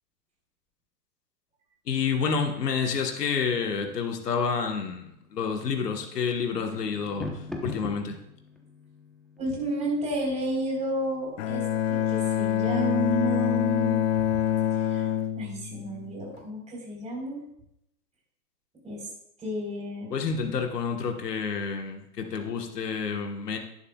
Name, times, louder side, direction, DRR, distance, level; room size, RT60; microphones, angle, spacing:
voice 1, 1.9-8.2 20.1-23.6, left 5 dB, 80° left, 4 dB, 1.4 m, -29 dB
sound 1, 3.3-13.5, left 2 dB, ahead, 0.8 m, -45 dB
voice 2, 9.4-11.6 11.9-14.1 14.7-15.1 15.4-17.4 18.8-19.1 19.4-20.1, right 1 dB, 15° right, -2 dB, 4.0 m, -31 dB
Bowed string instrument, 11.4-16.4, left 10 dB, 55° left, 0.7 m, -26 dB
11.0 x 10.5 x 2.3 m, 0.79 s
hypercardioid pair, 115°, 47 cm